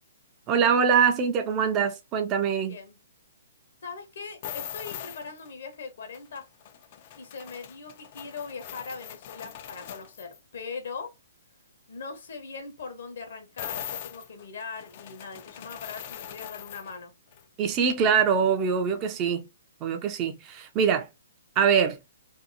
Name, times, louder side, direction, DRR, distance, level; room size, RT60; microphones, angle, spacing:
voice 1, 0.5-2.8 17.6-19.5 19.8-21.1 21.6-22.0, right 7 dB, 30° right, 0.4 m, -23 dB
voice 2, 3.8-6.5 7.2-11.1 11.9-17.1, left 5 dB, 65° left, 0.9 m, -40 dB
sound 1, 4.4-5.5 6.1-10.4 13.6-17.0 17.3-17.4, left 10 dB, 45° left, 0.3 m, -41 dB
2.7 x 2.3 x 2.6 m
hypercardioid pair, 135°, 0 cm